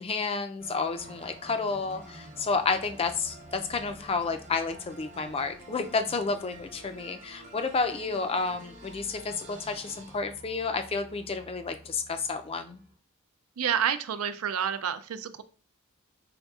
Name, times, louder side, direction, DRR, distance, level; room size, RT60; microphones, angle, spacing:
voice 1, 0.0-12.8, left 4 dB, 25° left, 8 dB, 0.4 m, -31 dB
sound 1, 0.6-13.0, right 1 dB, 35° right, 0.9 m, -49 dB
voice 2, 13.6-15.4, right 8 dB, 85° right, 11 dB, 0.4 m, -29 dB
5.2 x 3.5 x 2.3 m, 0.40 s
head